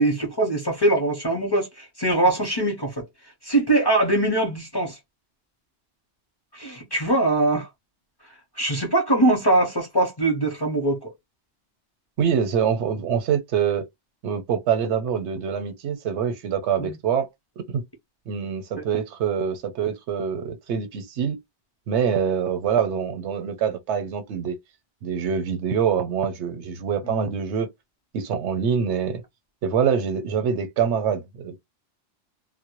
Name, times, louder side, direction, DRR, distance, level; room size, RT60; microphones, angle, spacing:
voice 1, 0.0-3.0 3.4-5.0 6.5-7.7 8.6-11.1 16.8-16.9 18.7-18.8 27.1-27.2, right 2 dB, 30° left, 0.6 m, -22 dB
voice 2, 12.2-13.9 14.2-17.3 17.6-17.8 18.3-21.4 21.9-24.6 25.0-27.7 28.1-29.2 29.6-31.6, right 7 dB, 85° right, 0.9 m, -25 dB
2.1 x 2.1 x 2.9 m
omnidirectional pair, 1.2 m